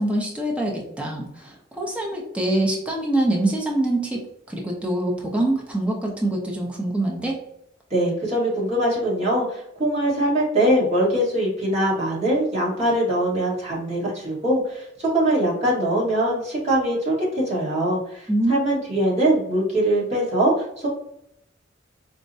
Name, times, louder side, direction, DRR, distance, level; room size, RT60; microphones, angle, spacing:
voice 1, 0.0-4.2 4.5-7.4 18.3-18.6, right 1 dB, 5° right, -2 dB, 0.5 m, -24 dB
voice 2, 7.9-20.9, right 1 dB, 35° right, -5 dB, 1.4 m, -22 dB
4.5 x 2.1 x 2.6 m, 0.74 s
head